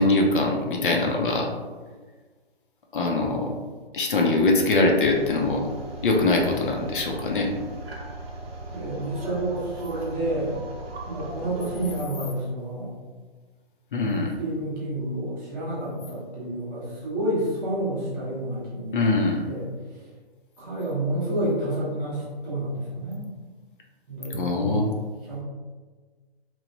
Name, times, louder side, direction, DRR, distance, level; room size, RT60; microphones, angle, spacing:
voice 1, 0.0-1.5 2.9-3.5 3.9-5.7 6.0-7.7 13.9-14.3 18.9-19.4 24.3-24.9, left 2 dB, 55° left, 1 dB, 0.4 m, -22 dB
sound 1, 5.0-12.0, right 2 dB, 70° right, 0.7 m, -38 dB
voice 2, 8.7-10.6 11.1-12.9 14.4-19.1 19.4-20.0 20.6-23.2 24.1-24.8 25.2-25.4, right 1 dB, 20° right, -8 dB, 0.7 m, -29 dB
3.0 x 2.1 x 2.5 m, 1.4 s
hypercardioid pair, 155°, 32 cm